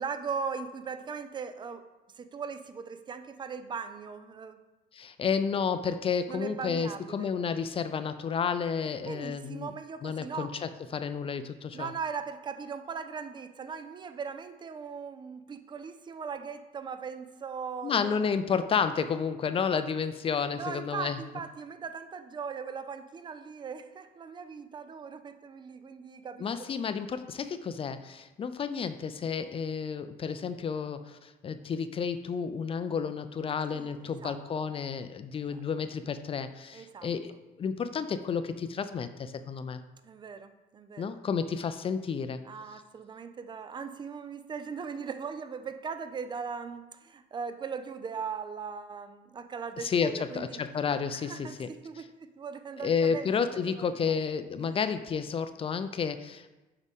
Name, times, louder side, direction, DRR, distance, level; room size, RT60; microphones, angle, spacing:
voice 1, 0.0-1.9 2.1-4.6 6.3-7.3 9.0-10.5 11.7-18.1 20.6-26.7 33.7-34.4 35.4-35.6 36.7-37.1 40.0-41.2 42.4-50.6 51.1-53.3 53.5-54.2 54.6-54.8, right 6 dB, 25° right, 10 dB, 0.5 m, -39 dB
voice 2, 4.9-9.7 10.0-11.9 17.8-21.2 26.4-37.3 37.6-39.8 41.0-42.4 49.8-51.7 52.8-56.5, left 6 dB, 35° left, 11 dB, 0.4 m, -31 dB
6.5 x 4.8 x 3.6 m, 1.1 s
cardioid pair, 110°, 17 cm